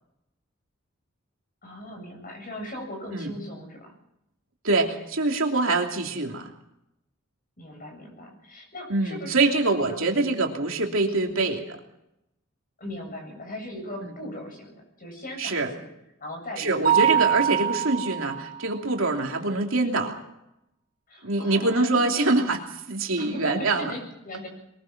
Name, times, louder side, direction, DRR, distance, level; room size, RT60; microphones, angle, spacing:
voice 1, 1.6-3.9 7.6-10.3 11.2-11.6 12.8-15.9 16.2-17.0 17.2-17.5 21.1-22.5 23.2-24.5, left 1 dB, 40° left, 2 dB, 7.9 m, -39 dB
voice 2, 4.6-6.5 8.9-11.6 14.0-14.1 15.4-15.7 16.6-20.2 21.2-22.6 22.9-23.9, right 3 dB, 65° right, 2 dB, 3.0 m, -24 dB
Mallet percussion, 16.8-18.6, right 10 dB, 40° right, 0.9 m, -23 dB
22.5 x 21.0 x 6.0 m, 0.85 s
head